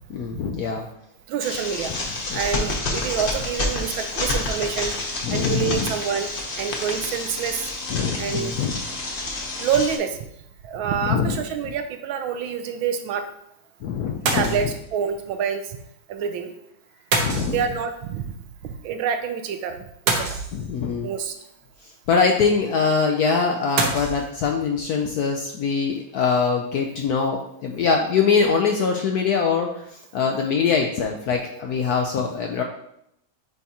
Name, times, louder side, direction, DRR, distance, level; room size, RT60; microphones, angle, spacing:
voice 1, 0.1-0.9 2.3-2.7 5.2-5.9 7.9-8.9 11.0-11.4 13.8-14.7 17.2-17.6 20.5-21.1 21.8-32.6, left 5 dB, 70° left, 2 dB, 0.9 m, -23 dB
voice 2, 1.3-1.9 2.3-5.0 5.3-6.3 6.6-7.7 8.2-8.5 9.6-10.2 10.6-13.2 14.3-15.6 16.1-16.5 17.5-18.3 18.6-19.8 20.1-20.4 21.0-21.3, right 7 dB, 80° right, 7 dB, 1.4 m, -27 dB
sound 1, 1.4-10.0, left 2 dB, 45° left, 0.7 m, -29 dB
sound 2, 14.3-14.9 17.1-18.0 20.1-21.0 23.8-24.2, right 3 dB, 60° right, 1.3 m, -25 dB
9.3 x 3.6 x 2.9 m, 0.74 s
omnidirectional pair, 2.2 m